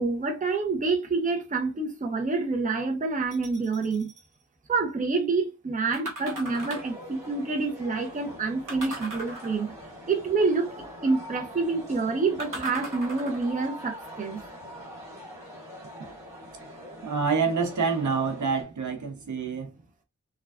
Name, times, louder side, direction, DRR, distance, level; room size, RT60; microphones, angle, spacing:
voice 1, 0.0-4.1 4.7-9.7 10.1-10.7 11.0-14.4, right 4 dB, 25° right, 0.6 m, -27 dB
sound 1, 3.3-4.3 5.9-7.0 8.7-9.8 12.4-13.6 14.2-14.3, right 1 dB, 85° right, 1.2 m, -39 dB
sound 2, 6.2-18.6, equal, 10° right, 1.6 m, -43 dB
voice 2, 17.0-19.7, right 5 dB, 65° right, 0.8 m, -27 dB
3.2 x 2.3 x 2.3 m
wide cardioid pair, 100°, 31 cm